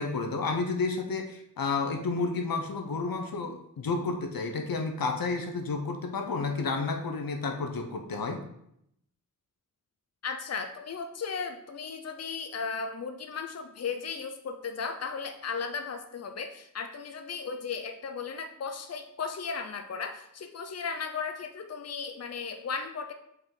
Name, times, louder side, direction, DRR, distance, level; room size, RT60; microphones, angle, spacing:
voice 1, 0.0-8.4, left 4 dB, 85° left, 4 dB, 0.8 m, -31 dB
voice 2, 10.2-23.1, left 5 dB, 50° left, 7 dB, 0.6 m, -36 dB
5.5 x 4.5 x 3.9 m, 0.76 s
cardioid pair, 45°, 34 cm